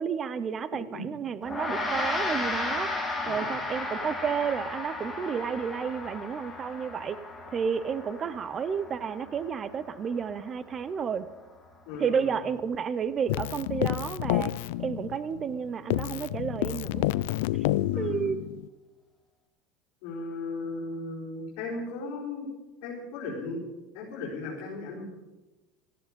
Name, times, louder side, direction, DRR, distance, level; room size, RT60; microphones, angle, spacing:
voice 1, 0.0-2.9 3.3-7.2 7.5-11.3 12.0-14.5 14.8-17.1 18.0-18.5, right 7 dB, 20° right, 16 dB, 0.5 m, -31 dB
Gong, 1.4-11.0, left 2 dB, 5° left, 1.7 m, -35 dB
voice 2, 11.9-12.4 17.9-18.3 20.0-22.5 22.8-23.6 23.9-25.1, left 3 dB, 50° left, -9 dB, 4.7 m, -36 dB
Keyboard (musical), 13.3-15.6 15.9-18.7, left 16 dB, 75° left, 0.4 m, -29 dB
18.0 x 13.5 x 5.2 m, 1.1 s
cardioid pair, 180°, 0 cm